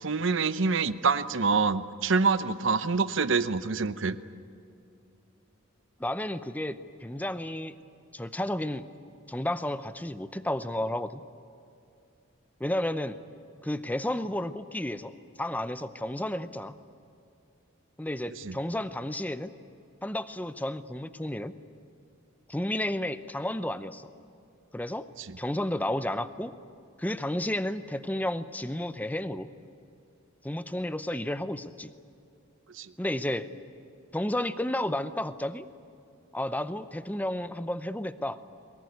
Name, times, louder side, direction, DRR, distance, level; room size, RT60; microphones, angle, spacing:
voice 1, 0.0-4.2 18.3-18.6 25.2-25.4 32.7-32.9, right 4 dB, 65° right, 13 dB, 0.8 m, -26 dB
voice 2, 6.0-7.7 8.1-8.8 9.3-11.2 12.6-13.2 13.6-15.1 15.4-16.7 18.0-19.5 20.0-21.5 22.5-24.1 24.7-25.1 25.4-26.5 27.0-29.5 30.4-31.9 33.0-33.5 34.1-35.7 36.3-38.4, left 1 dB, 10° left, 12 dB, 0.6 m, -32 dB
23.0 x 21.0 x 9.5 m, 2.6 s
head